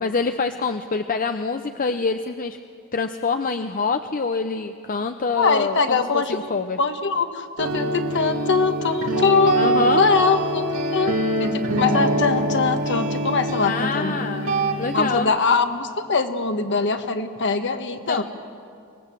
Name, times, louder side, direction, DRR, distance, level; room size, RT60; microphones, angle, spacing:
voice 1, 0.0-2.6 2.9-6.8 9.5-10.1 13.6-15.3 18.1-18.2, left 4 dB, 40° left, 8 dB, 0.7 m, -26 dB
voice 2, 5.4-6.5 6.8-10.6 10.9-11.1 11.4-14.1 14.9-18.2, left 4 dB, 55° left, 8 dB, 1.4 m, -22 dB
sound 1, 7.6-15.2, right 1 dB, 85° right, 2.4 m, -24 dB
24.5 x 19.5 x 7.5 m, 2.4 s
head